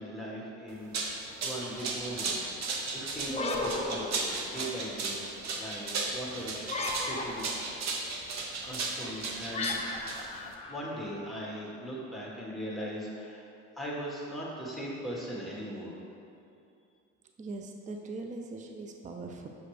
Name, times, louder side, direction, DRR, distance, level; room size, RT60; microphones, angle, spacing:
voice 1, 0.0-2.3 2.9-5.2 5.6-7.9 8.6-9.8 10.7-13.5 13.8-16.0, equal, ahead, -5 dB, 1.5 m, -39 dB
sound 1, 0.7-10.5, right 3 dB, 60° right, 0.8 m, -35 dB
sound 2, 3.2-4.8 6.6-7.7 9.5-11.4, left 2 dB, 20° left, 0.7 m, -35 dB
voice 2, 17.4-19.5, right 3 dB, 25° right, 3 dB, 0.4 m, -40 dB
6.8 x 4.9 x 3.2 m, 2.5 s
cardioid pair, 90°, 30 cm